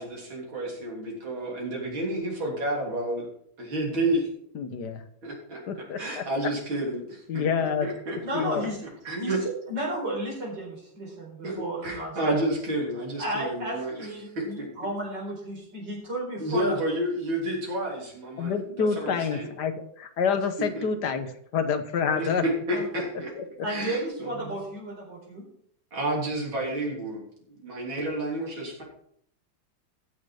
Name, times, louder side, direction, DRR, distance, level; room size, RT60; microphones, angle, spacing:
voice 1, 0.0-3.3 3.6-4.3 5.2-8.5 8.8-9.4 11.4-14.9 16.4-19.5 20.7-20.9 22.1-23.3 23.7-24.6 25.9-27.2 27.5-28.8, right 1 dB, 85° right, -2 dB, 4.1 m, -31 dB
voice 2, 4.5-5.0 5.7-6.2 7.3-7.9 8.3-8.6 18.4-22.4 23.3-23.4, left 6 dB, 60° left, 9 dB, 1.5 m, -28 dB
voice 3, 8.2-8.8 9.2-9.3 9.7-12.3 13.2-16.8 22.7-22.8 23.6-25.4, right 1 dB, 60° right, -2 dB, 5.2 m, -33 dB
14.5 x 6.6 x 4.9 m, 0.68 s
omnidirectional pair, 2.1 m